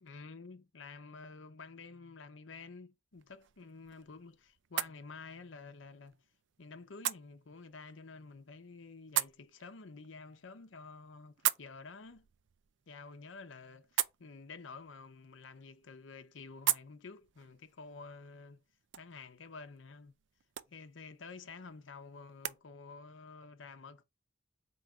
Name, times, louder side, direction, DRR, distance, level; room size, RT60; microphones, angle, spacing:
voice 1, 0.0-6.2 6.6-12.3 12.9-18.6 19.0-20.1 20.7-24.0, left 4 dB, 85° left, 0.8 m, -50 dB
sound 1, 3.1-22.6, right 13 dB, 70° right, 0.4 m, -42 dB
4.4 x 3.1 x 3.6 m
head